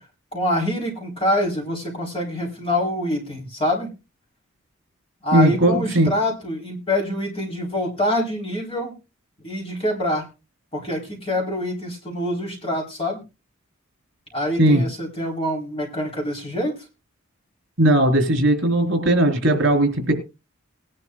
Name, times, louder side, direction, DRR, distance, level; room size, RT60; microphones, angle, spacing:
voice 1, 0.3-3.9 5.2-8.9 9.4-10.3 10.7-13.2 14.3-16.7, left 1 dB, 30° left, -1 dB, 4.1 m, -25 dB
voice 2, 5.3-6.1 14.6-14.8 17.8-20.1, right 1 dB, 60° right, 4 dB, 3.8 m, -18 dB
19.5 x 11.0 x 2.4 m, 0.28 s
head